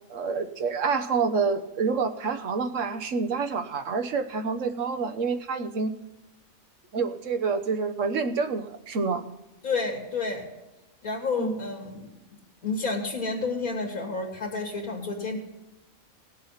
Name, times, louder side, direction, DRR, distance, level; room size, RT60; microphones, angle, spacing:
voice 1, 0.1-5.9 6.9-9.2 11.4-11.5, right 5 dB, 65° right, 9 dB, 1.3 m, -27 dB
voice 2, 9.6-10.4 11.0-12.1 12.6-15.4, left 3 dB, 85° left, 0 dB, 2.7 m, -30 dB
17.5 x 7.3 x 5.7 m, 1.0 s
omnidirectional pair, 1.4 m